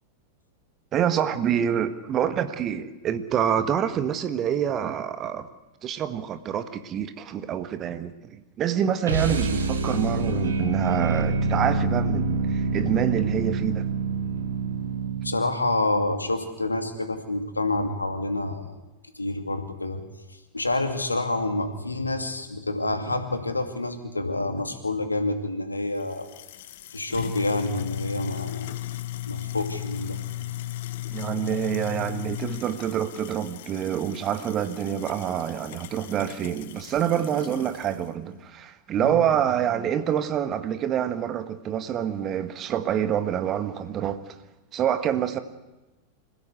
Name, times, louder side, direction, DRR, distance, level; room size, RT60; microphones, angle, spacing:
voice 1, 0.9-5.5 5.8-13.9 31.1-44.3 44.7-45.4, right 9 dB, 30° right, 1.6 m, -27 dB
sound 1, 9.0-15.5, right 3 dB, 70° right, 2.6 m, -26 dB
sound 2, 12.9-15.2 15.5-16.5 17.3-17.7 18.7-18.9, left 2 dB, 20° left, 8.0 m, -45 dB
voice 2, 15.2-18.7 19.2-20.0 20.5-26.3 26.9-28.7 29.3-30.2 39.0-39.2, left 2 dB, 80° left, 2.4 m, -28 dB
sound 3, 26.0-38.0, left 14 dB, 55° left, 0.9 m, -36 dB
26.5 x 16.0 x 8.3 m
figure-of-eight pair, 90°, 0 cm